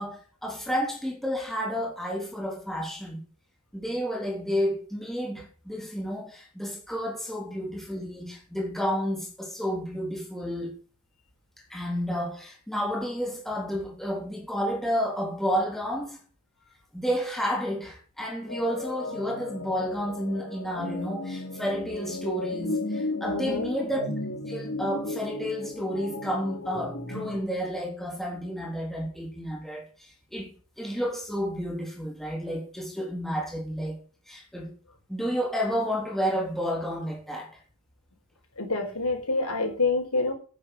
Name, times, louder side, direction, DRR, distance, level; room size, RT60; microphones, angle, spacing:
voice 1, 0.0-3.2 3.7-10.7 11.7-16.2 16.9-24.1 24.5-34.0 34.3-34.7 35.1-37.5, equal, ahead, 3.3 m, -31 dB
sound 1, 18.5-27.4, left 2 dB, 60° left, 2.8 m, -34 dB
voice 2, 23.3-23.7 38.6-40.3, left 3 dB, 90° left, 4.6 m, -27 dB
11.5 x 9.5 x 6.5 m
head